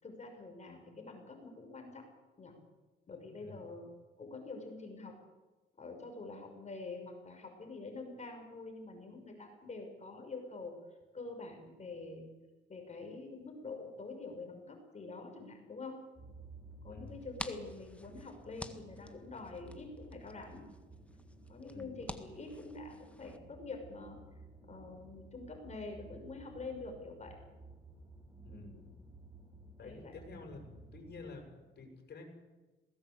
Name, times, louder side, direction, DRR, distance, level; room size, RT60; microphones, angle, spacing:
voice 1, 0.0-2.1 2.4-2.6 3.1-3.9 4.2-5.2 5.8-10.7 11.1-12.3 12.7-16.0 16.8-20.7 21.5-24.2 24.7-27.4 28.5-28.8 29.8-30.1, left 3 dB, 35° left, 3 dB, 6.0 m, -46 dB
voice 2, 3.0-3.7 16.9-17.1 21.7-22.0 28.4-28.8 29.8-30.6 30.9-32.3, left 4 dB, 55° left, 2 dB, 7.4 m, -50 dB
sound 1, 16.2-31.2, right 2 dB, 15° right, 6.0 m, -55 dB
sound 2, 17.1-23.4, left 1 dB, 5° left, 1.7 m, -50 dB
20.5 x 18.5 x 8.3 m, 1.2 s
cardioid pair, 90°, 20 cm